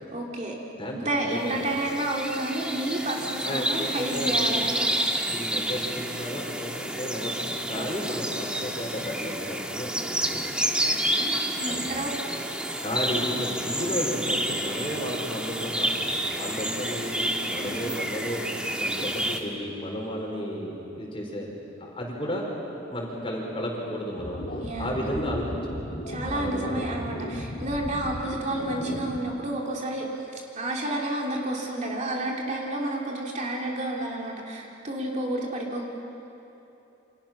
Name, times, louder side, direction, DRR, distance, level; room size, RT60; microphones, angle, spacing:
voice 1, 0.1-0.6 0.9-4.9 7.7-8.0 10.9-12.3 17.6-17.7 24.6-25.2 26.1-35.9, right 1 dB, 35° right, -2 dB, 3.0 m, -30 dB
voice 2, 0.8-1.6 3.4-5.0 5.3-10.4 11.7-11.8 12.8-18.4 18.8-21.5 21.8-22.4 22.9-24.4 24.8-25.4 25.8-25.9 26.3-27.0, equal, 25° left, -1 dB, 4.8 m, -33 dB
sound 1, 1.3-19.4, right 1 dB, 5° right, 1.5 m, -29 dB
sound 2, 24.2-29.2, equal, 55° left, 2.7 m, -35 dB
29.5 x 27.0 x 6.0 m, 3.0 s
head